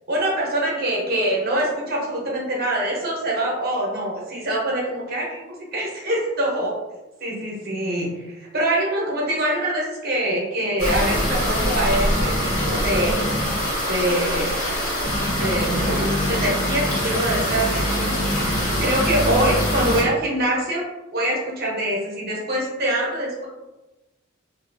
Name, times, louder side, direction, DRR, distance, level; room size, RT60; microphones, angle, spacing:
voice 1, 0.1-6.7 7.2-13.2 13.9-14.7 15.4-20.8 21.1-23.5, right 1 dB, 45° right, -3 dB, 0.8 m, -24 dB
sound 1, 10.8-20.0, equal, 75° left, 1.3 m, -23 dB
2.7 x 2.4 x 2.6 m, 1.1 s
head